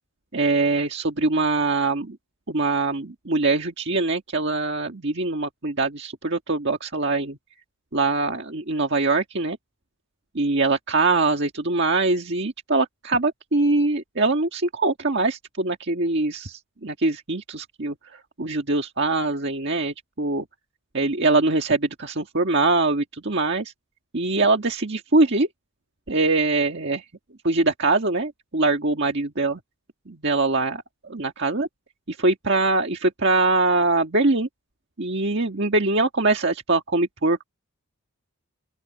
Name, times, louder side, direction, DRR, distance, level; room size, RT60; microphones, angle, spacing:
voice 1, 0.3-2.2 2.5-7.4 7.9-9.6 10.3-20.4 20.9-23.7 24.1-25.5 26.1-27.1 27.4-29.6 30.1-31.7 32.1-34.5 35.0-37.4, right 3 dB, 55° right, 1.7 m, -23 dB
open air
head